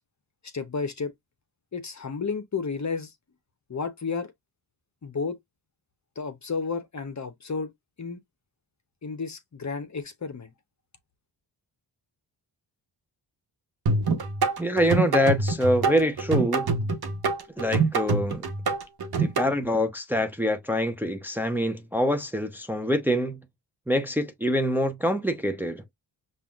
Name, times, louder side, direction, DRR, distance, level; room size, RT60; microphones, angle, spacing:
voice 1, 0.5-1.1 1.7-3.1 3.7-4.3 5.0-5.4 6.2-7.7 8.0-8.2 9.0-10.5, left 4 dB, 40° left, 0.9 m, -32 dB
sound 1, 13.9-19.5, right 3 dB, 55° right, 1.2 m, -25 dB
voice 2, 14.6-16.7 17.6-18.4 19.2-23.4 23.9-25.8, equal, 5° right, 0.8 m, -25 dB
5.5 x 2.5 x 2.4 m
cardioid pair, 60°, 46 cm